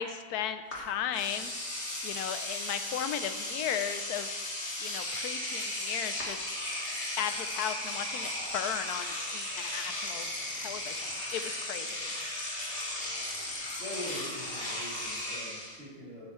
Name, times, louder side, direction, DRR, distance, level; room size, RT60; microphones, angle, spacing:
voice 1, 0.0-1.5 2.0-4.3 4.8-6.5 7.2-10.3 10.6-12.1, left 9 dB, 85° left, 10 dB, 1.1 m, -36 dB
Engine / Domestic sounds home sounds, 0.7-0.8 1.1-15.8, left 1 dB, 40° left, 2.0 m, -36 dB
voice 2, 13.8-16.3, left 1 dB, 50° right, -8 dB, 3.7 m, -43 dB
8.8 x 7.5 x 4.3 m, 1.3 s
omnidirectional pair, 1.6 m